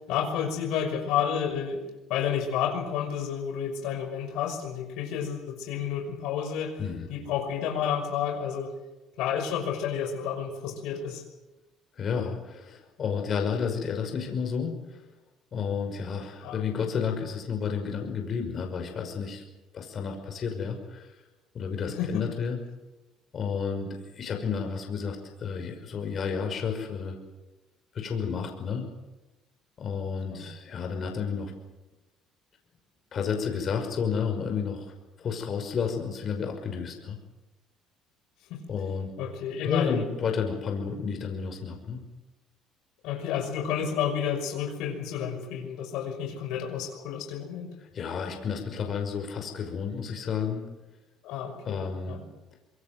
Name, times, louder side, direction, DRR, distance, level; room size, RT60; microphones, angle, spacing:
voice 1, 0.1-1.8 2.1-6.7 7.1-8.7 9.2-11.2 16.4-16.6 22.0-22.2 30.3-30.5 38.5-38.6 39.2-40.0 43.0-47.7 51.2-52.2, left 8 dB, 80° left, 4 dB, 5.8 m, -30 dB
voice 2, 12.0-15.0 15.5-19.4 19.7-21.1 21.5-22.6 23.3-27.2 27.9-28.9 29.8-31.5 33.1-34.9 35.2-37.2 38.7-39.1 39.6-42.0 47.8-50.6 51.6-52.2, left 6 dB, 45° left, 4 dB, 5.8 m, -31 dB
25.5 x 22.5 x 7.9 m, 1.1 s
cardioid pair, 100°, 0 cm